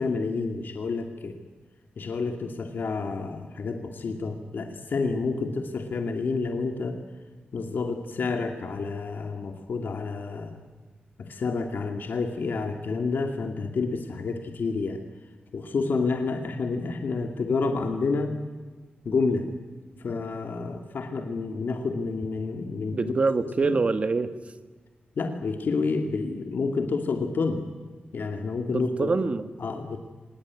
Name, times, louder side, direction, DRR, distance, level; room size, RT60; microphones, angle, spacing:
voice 1, 0.0-1.4 2.0-7.0 7.5-10.6 11.2-15.0 15.5-18.4 19.1-19.5 20.0-23.1 23.6-23.7 25.2-27.6 28.1-29.2 29.6-30.0, left 4 dB, 65° left, 5 dB, 2.4 m, -29 dB
voice 2, 22.9-24.3 28.7-29.5, right 3 dB, 35° right, 11 dB, 1.4 m, -25 dB
24.5 x 20.0 x 9.7 m, 1.3 s
wide cardioid pair, 170°, 4 cm